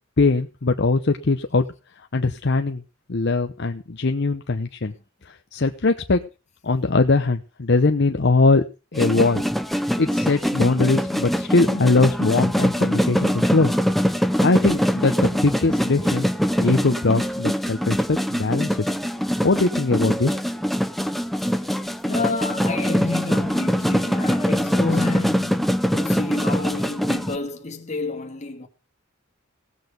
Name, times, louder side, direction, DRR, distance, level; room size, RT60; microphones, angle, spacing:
voice 1, 0.2-1.6 2.1-2.8 3.1-4.9 5.2-6.2 6.6-8.6 8.9-9.4 10.0-13.7 14.4-16.3 16.6-18.9 19.4-20.4, left 3 dB, 55° left, 0.8 m, -21 dB
sound 1, 8.9-27.4, equal, ahead, 0.6 m, -23 dB
voice 2, 22.0-28.7, left 3 dB, 35° left, 2.1 m, -29 dB
17.0 x 8.0 x 5.2 m
head